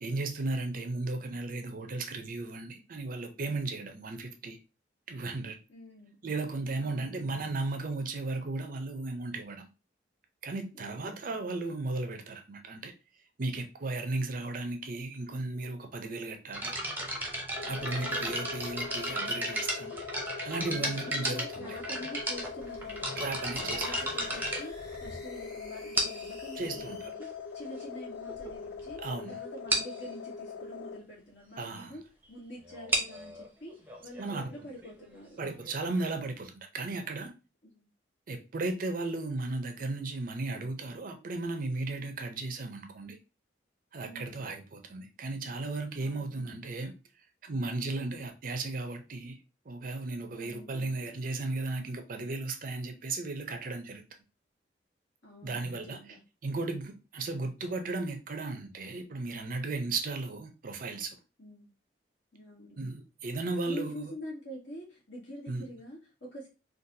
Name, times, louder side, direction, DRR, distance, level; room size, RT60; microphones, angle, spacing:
voice 1, 0.0-4.6 5.1-5.6 6.2-9.7 10.4-12.9 13.4-16.7 17.6-19.9 20.4-21.8 23.2-23.8 26.6-27.0 29.0-29.4 31.6-31.9 34.2-34.4 35.4-37.3 38.3-43.2 43.9-46.9 47.4-49.4 49.7-54.0 55.4-56.0 56.4-61.2 62.8-64.1 65.5-65.6, right 2 dB, 50° right, 0.5 m, -35 dB
voice 2, 5.7-6.2 6.8-7.2 10.7-11.2 20.6-23.3 23.6-27.3 27.5-29.0 29.3-32.0 32.3-35.4 37.6-37.9 44.0-44.4 46.0-46.4 50.4-50.9 55.2-56.2 61.4-61.7 62.3-62.8 63.6-66.5, equal, 70° left, 1.8 m, -46 dB
sound 1, 16.5-25.4 25.9-26.4 27.2-27.3 27.9-28.0 28.3-28.5 28.8-28.9 29.2-29.3 29.7-30.0 32.7-36.2, right 1 dB, 10° right, 0.7 m, -34 dB
sound 2, 17.5-31.0, left 6 dB, 90° left, 0.3 m, -42 dB
sound 3, 21.7-27.1, left 1 dB, 20° left, 1.1 m, -53 dB
3.9 x 2.4 x 2.7 m
head